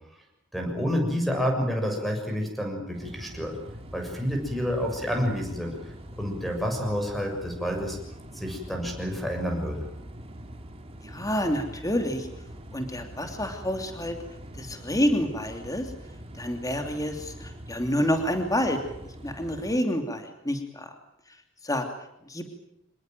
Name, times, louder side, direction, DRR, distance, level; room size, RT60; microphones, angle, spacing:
voice 1, 0.5-3.6 3.9-8.0 8.3-9.9, equal, ahead, 2 dB, 6.9 m, -29 dB
sound 1, 2.9-19.8, equal, 30° right, 2.7 m, -43 dB
voice 2, 11.0-12.3 12.7-14.2 14.6-15.9 16.4-18.8 19.2-20.9 21.6-21.8 22.3-22.5, equal, 15° left, 5 dB, 2.9 m, -28 dB
26.0 x 20.0 x 9.2 m, 0.77 s
head